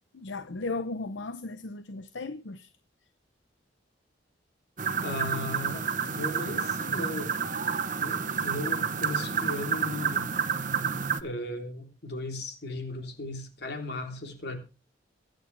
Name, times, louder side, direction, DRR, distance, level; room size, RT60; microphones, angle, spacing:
voice 1, 0.1-2.7, left 3 dB, 80° left, 0.8 m, -36 dB
sound 1, 4.8-11.2, right 6 dB, 45° right, 0.9 m, -29 dB
voice 2, 5.0-7.3 8.0-10.3 11.2-14.6, left 1 dB, 60° left, 3.3 m, -36 dB
23.0 x 9.1 x 3.3 m
head